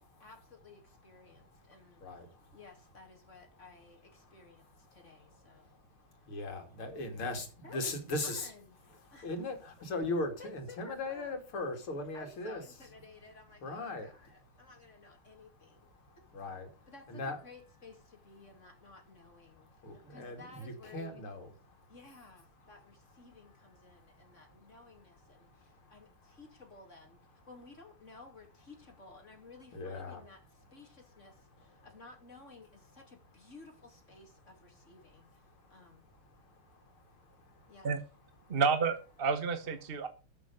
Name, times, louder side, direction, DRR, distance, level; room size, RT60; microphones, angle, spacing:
voice 1, 0.2-2.0 2.5-5.7 7.6-7.9 8.2-8.8 9.1-9.4 10.4-11.3 12.1-16.3 16.9-21.2 21.9-27.2 27.4-30.4 30.7-31.3 31.8-36.1 37.7-37.9, left 3 dB, 35° left, 3.0 m, -55 dB
voice 2, 6.3-8.5 9.2-12.6 13.6-14.1 16.3-16.7 17.1-17.4 19.8-21.5 29.7-30.2, left 2 dB, 75° left, 3.5 m, -38 dB
voice 3, 38.5-40.1, right 5 dB, 35° right, 1.0 m, -30 dB
13.0 x 6.3 x 6.9 m
omnidirectional pair, 2.3 m